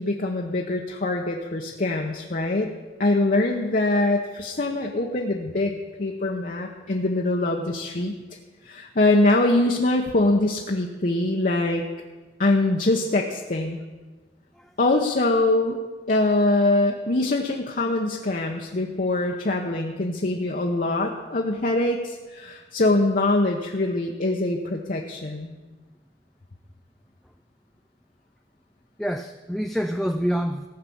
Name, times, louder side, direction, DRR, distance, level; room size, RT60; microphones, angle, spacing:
voice 1, 0.0-2.7 3.0-8.2 8.6-11.8 12.4-13.8 14.8-15.8 16.1-25.5, left 2 dB, 50° left, 1 dB, 0.9 m, -23 dB
voice 2, 29.0-30.7, equal, ahead, 5 dB, 0.4 m, -27 dB
15.0 x 5.7 x 8.4 m, 1.3 s
head